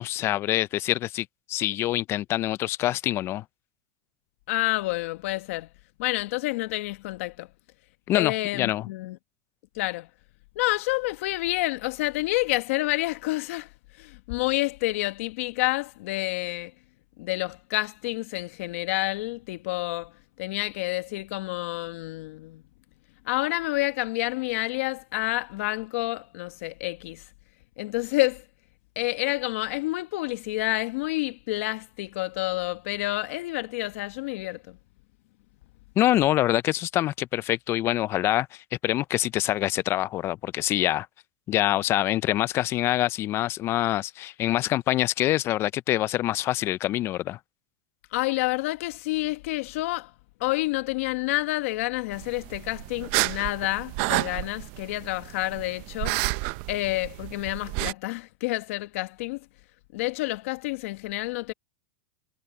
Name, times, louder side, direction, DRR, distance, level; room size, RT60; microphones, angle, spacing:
voice 1, 0.0-3.4 8.1-8.9 36.0-41.1 41.5-47.4, left 14 dB, 30° left, 0.4 m, -25 dB
voice 2, 4.5-5.7 6.0-7.5 8.1-9.2 9.7-10.1 10.5-16.7 17.2-22.6 23.2-27.2 27.8-28.4 29.0-34.8 48.1-50.1 50.4-56.2 56.7-59.4 59.9-61.5, left 20 dB, 65° left, 1.3 m, -29 dB
sound 1, 52.1-57.9, right 23 dB, 55° right, 0.8 m, -31 dB
supercardioid pair, 135°, 8 cm